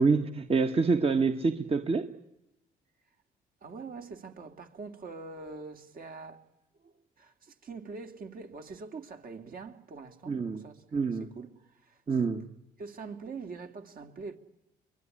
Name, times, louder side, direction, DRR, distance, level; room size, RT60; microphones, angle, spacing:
voice 1, 0.0-2.1 10.3-10.6 10.9-11.3 12.1-12.4, right 4 dB, 35° right, 1.5 m, -26 dB
voice 2, 3.6-6.5 6.8-10.8 11.1-12.0 12.8-14.4, right 4 dB, 50° right, 2.7 m, -44 dB
23.5 x 22.5 x 10.0 m
supercardioid pair, 65°, 18 cm